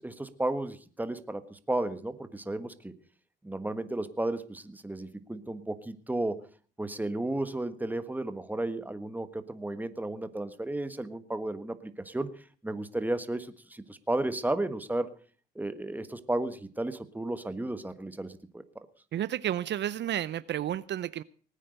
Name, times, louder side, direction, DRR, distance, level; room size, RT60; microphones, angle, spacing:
voice 1, 0.0-2.9 3.4-6.4 6.8-12.3 12.6-15.1 15.5-18.6, right 2 dB, 10° right, 11 dB, 1.5 m, -33 dB
voice 2, 19.1-21.2, right 11 dB, 60° right, 17 dB, 0.6 m, -31 dB
19.5 x 9.2 x 6.5 m, 0.43 s
cardioid pair, 90°, 20 cm